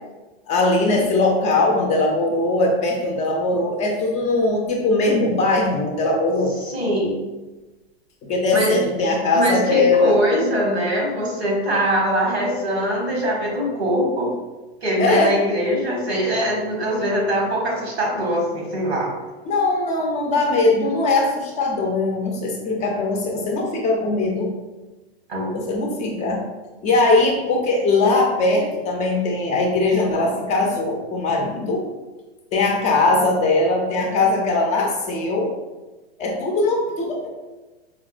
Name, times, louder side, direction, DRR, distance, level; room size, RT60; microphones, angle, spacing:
voice 1, 0.5-6.5 8.2-10.2 15.0-15.4 19.4-24.5 25.5-26.5 26.8-31.8 32.5-35.5 36.2-37.3, left 2 dB, 25° left, 0 dB, 0.5 m, -20 dB
voice 2, 6.7-7.2 8.5-8.8 9.3-14.3 14.8-19.1 25.3-25.6, equal, 90° right, -1 dB, 1.2 m, -22 dB
4.5 x 2.0 x 2.4 m, 1.2 s
hypercardioid pair, 120°, 31 cm